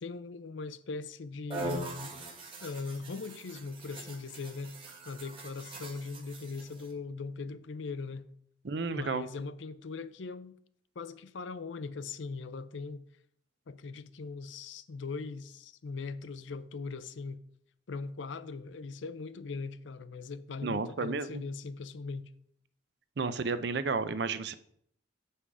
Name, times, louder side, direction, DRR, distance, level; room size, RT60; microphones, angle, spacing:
voice 1, 0.0-2.2 2.6-4.7 5.1-8.3 8.9-10.6 11.0-13.0 13.7-17.4 17.9-22.3, left 4 dB, 80° left, 0.5 m, -40 dB
sound 1, 1.5-6.9, right 2 dB, 30° right, 1.6 m, -42 dB
voice 2, 8.6-9.3 20.6-21.4 23.2-24.5, right 4 dB, 60° right, 0.5 m, -32 dB
8.3 x 5.7 x 4.8 m
head